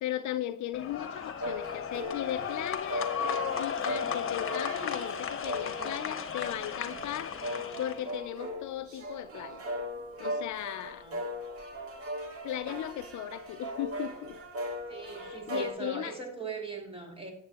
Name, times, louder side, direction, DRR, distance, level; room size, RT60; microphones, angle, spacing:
voice 1, 0.0-3.1 3.6-9.6 10.2-11.1 12.4-14.4 15.2-16.1, left 13 dB, 70° left, 0.5 m, -37 dB
sound 1, 0.7-8.1, left 7 dB, 45° left, 1.1 m, -35 dB
sound 2, 1.4-15.7, equal, 50° right, 1.9 m, -38 dB
voice 2, 10.8-11.2 14.9-17.3, right 4 dB, 20° right, 2.6 m, -40 dB
9.5 x 7.6 x 2.9 m
cardioid pair, 90°, 30 cm